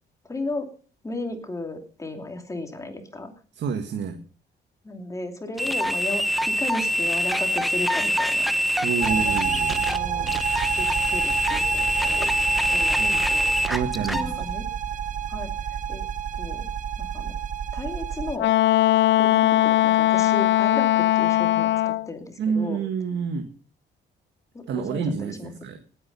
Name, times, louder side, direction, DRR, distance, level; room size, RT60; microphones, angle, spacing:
voice 1, 0.2-0.7 1.0-3.3 4.8-8.5 9.0-9.4 9.7-10.4 10.7-12.3 12.7-14.6 15.3-16.0 16.3-16.7 17.0-17.3 17.7-18.5 18.9-22.8 24.5-25.5, left 2 dB, 15° left, 5 dB, 2.8 m, -35 dB
voice 2, 3.6-4.2 8.8-9.9 13.0-13.2 13.7-14.3 22.4-23.5 24.7-25.8, right 6 dB, 75° right, 6 dB, 1.8 m, -28 dB
sound 1, 5.6-14.3, equal, ahead, 0.8 m, -24 dB
sound 2, 9.0-18.4, right 9 dB, 40° right, 0.9 m, -29 dB
Wind instrument woodwind instrument, 18.4-22.1, left 14 dB, 80° left, 0.7 m, -20 dB
19.0 x 9.0 x 5.5 m, 0.41 s
cardioid pair, 150°, 19 cm